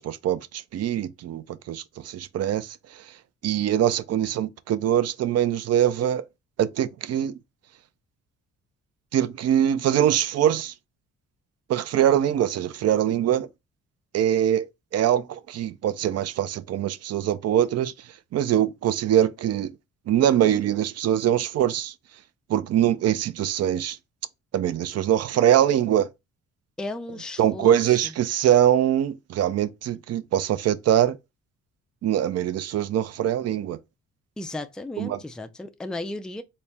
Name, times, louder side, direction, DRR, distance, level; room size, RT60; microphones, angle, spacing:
voice 1, 0.0-2.8 3.4-6.2 6.6-7.3 9.1-10.7 11.7-13.5 14.1-14.7 14.9-17.9 18.3-19.7 20.1-21.9 22.5-24.0 24.5-26.1 27.4-31.2 32.0-33.8 35.0-35.2, right 10 dB, 55° right, 0.5 m, -23 dB
voice 2, 26.8-28.1 34.4-36.4, left 2 dB, 5° left, 0.3 m, -35 dB
4.2 x 2.1 x 3.4 m
cardioid pair, 90°, 30 cm